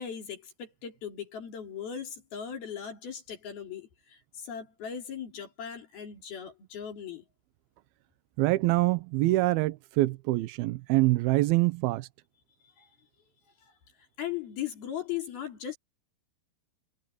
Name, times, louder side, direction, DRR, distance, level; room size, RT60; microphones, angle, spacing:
voice 1, 0.0-7.2 12.8-12.9 14.2-15.8, left 9 dB, 60° left, 5.6 m, -38 dB
voice 2, 8.4-12.1, right 19 dB, 75° right, 2.4 m, -25 dB
omnidirectional pair, 5.1 m